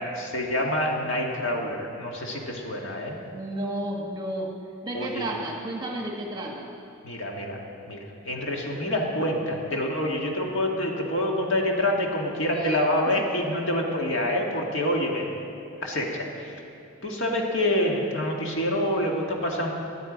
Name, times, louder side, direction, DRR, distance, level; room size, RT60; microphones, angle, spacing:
voice 1, 0.0-3.2 4.9-5.3 7.0-15.3 15.8-16.5 17.0-19.7, left 1 dB, 55° left, 0 dB, 1.9 m, -27 dB
voice 2, 3.3-4.5 4.8-6.7 12.5-12.8 13.2-13.3, right 1 dB, 20° right, 0 dB, 1.4 m, -32 dB
18.0 x 11.0 x 5.1 m, 3.0 s
head